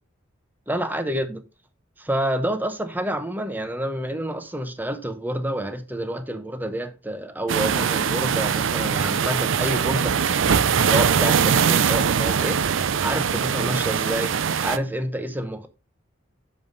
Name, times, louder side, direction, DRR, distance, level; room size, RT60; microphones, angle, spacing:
voice 1, 0.7-1.4 2.0-12.6 13.0-14.4 14.6-15.7, right 1 dB, 10° right, 0.8 m, -28 dB
sound 1, 7.5-14.8, right 7 dB, 70° right, 0.5 m, -22 dB
6.8 x 5.4 x 3.8 m
head